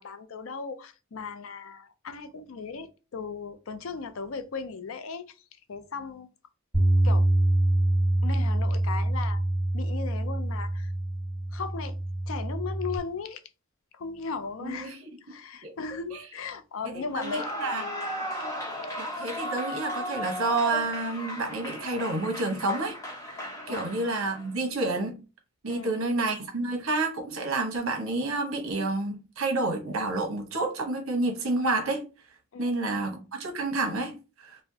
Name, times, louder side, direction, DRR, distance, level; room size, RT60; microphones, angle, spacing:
voice 1, 0.0-5.4 5.7-6.3 7.0-7.3 8.2-9.4 9.7-10.9 11.5-12.0 12.3-13.4 13.9-14.9 15.2-17.5 23.7-23.9 25.7-26.1 32.5-33.0, left 5 dB, 70° left, 0.5 m, -37 dB
Bass guitar, 6.7-13.0, right 1 dB, 15° right, 1.7 m, -25 dB
voice 2, 14.6-15.0 15.6-15.7 16.1-16.2 16.9-17.8 19.0-23.0 23.3-23.4 23.7-25.2 25.6-32.0 32.6-34.6, right 2 dB, 80° right, 1.0 m, -29 dB
Clapping / Cheering / Applause, 17.1-24.5, equal, 15° left, 0.9 m, -36 dB
4.1 x 2.2 x 2.7 m
head